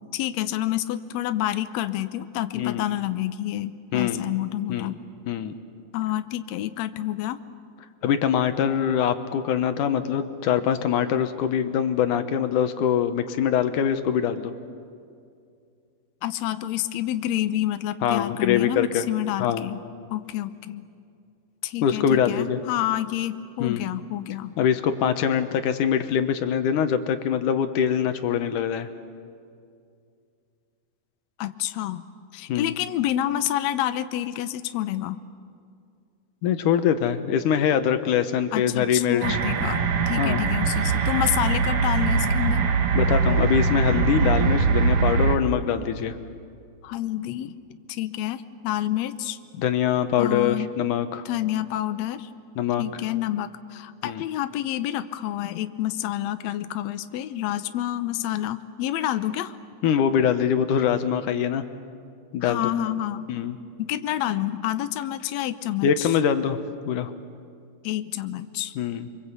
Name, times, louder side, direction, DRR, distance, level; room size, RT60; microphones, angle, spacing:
voice 1, 0.0-5.0 5.9-7.4 16.2-19.8 20.1-20.8 21.6-24.5 31.4-32.0 32.3-35.2 38.5-42.6 46.8-47.5 47.9-49.4 50.2-50.7 51.2-52.3 52.8-59.6 62.4-63.3 63.8-66.2 67.8-68.8, left 13 dB, 85° left, 10 dB, 1.5 m, -28 dB
voice 2, 3.9-4.2 4.7-4.9 5.3-5.5 8.0-14.5 18.0-19.0 19.4-19.6 21.8-22.6 23.6-23.8 24.6-28.9 32.5-32.7 36.4-39.4 40.2-40.4 43.0-46.1 49.6-51.2 52.6-52.8 54.0-54.2 59.8-61.6 62.3-62.7 63.3-63.6 65.8-66.6 66.9-67.1 68.8-69.1, left 8 dB, 65° left, 9 dB, 2.4 m, -23 dB
sound 1, 39.2-45.4, right 5 dB, 55° right, 1.6 m, -22 dB
30.0 x 24.0 x 8.3 m, 2.3 s
omnidirectional pair, 4.3 m